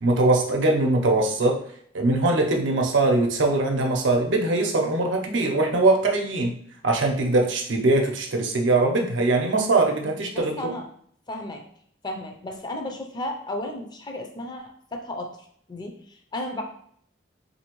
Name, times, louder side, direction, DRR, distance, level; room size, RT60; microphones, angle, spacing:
voice 1, 0.0-1.6 1.9-6.6 6.8-10.5, right 2 dB, 85° right, 1 dB, 0.7 m, -21 dB
voice 2, 10.0-10.9 11.3-11.6 12.0-16.6, left 1 dB, 25° left, 3 dB, 0.4 m, -34 dB
3.7 x 2.7 x 3.0 m, 0.63 s
head